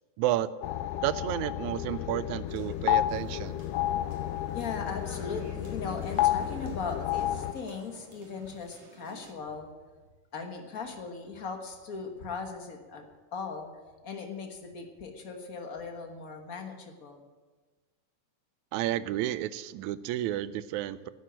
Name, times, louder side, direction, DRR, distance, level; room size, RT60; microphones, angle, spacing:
voice 1, 0.2-0.5 1.0-3.7 18.7-21.1, right 13 dB, 80° right, 16 dB, 1.8 m, -31 dB
sound 1, 0.6-7.5, left 13 dB, 90° left, 1.4 m, -31 dB
sound 2, 2.5-9.3, right 4 dB, 60° right, 2.9 m, -53 dB
voice 2, 4.5-9.7 10.3-13.0 13.3-13.7 14.0-17.2, left 5 dB, 65° left, 4 dB, 0.8 m, -38 dB
12.0 x 9.7 x 8.9 m, 1.3 s
omnidirectional pair, 3.6 m